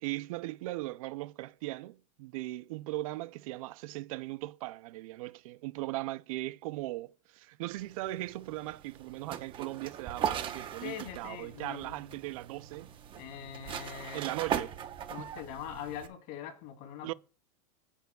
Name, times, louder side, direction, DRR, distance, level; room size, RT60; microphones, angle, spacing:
voice 1, 0.0-12.9 14.1-14.8 15.2-15.3 17.0-17.1, right 18 dB, 65° right, 0.5 m, -38 dB
sound 1, 7.8-16.1, right 9 dB, 25° right, 1.0 m, -39 dB
voice 2, 10.8-12.0 13.2-14.2 15.1-17.1, left 9 dB, 50° left, 2.7 m, -42 dB
16.0 x 6.8 x 2.3 m
supercardioid pair, 145°, 19 cm